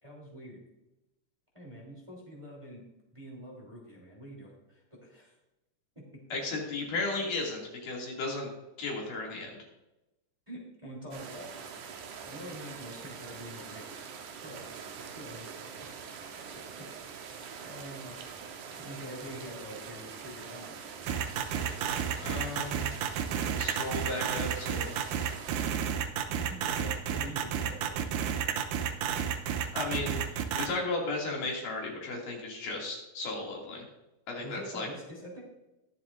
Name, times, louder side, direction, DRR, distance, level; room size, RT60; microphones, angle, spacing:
voice 1, 0.0-0.6 1.5-2.8 3.1-5.3 5.9-6.2 10.5-11.5 12.3-14.7 14.9-15.5 15.8-16.1 16.7-16.9 17.6-18.1 18.8-20.8 26.3-28.4 34.4-35.4, equal, 10° right, -3 dB, 3.0 m, -45 dB
voice 2, 6.3-8.5 8.8-9.6 22.2-22.9 23.4-24.9 29.7-30.2 30.6-33.8 34.3-34.9, left 3 dB, 80° left, -2 dB, 4.0 m, -35 dB
sound 1, 11.1-25.7, right 6 dB, 75° right, 2.4 m, -44 dB
sound 2, 21.1-30.7, right 8 dB, 90° right, 2.4 m, -31 dB
21.5 x 7.4 x 2.5 m, 0.97 s
omnidirectional pair, 3.7 m